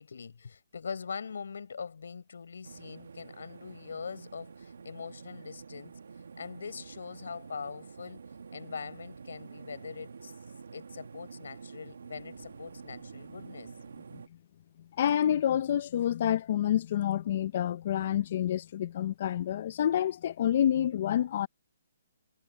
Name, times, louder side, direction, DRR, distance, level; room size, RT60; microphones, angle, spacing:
voice 1, 0.0-5.9 6.4-8.2 8.5-10.3 10.7-13.7, left 5 dB, 70° left, 4.2 m, -42 dB
sound 1, 2.6-14.3, right 5 dB, 80° right, 1.5 m, -48 dB
voice 2, 15.0-21.5, left 10 dB, 35° left, 0.5 m, -28 dB
hypercardioid pair, 175°, 0 cm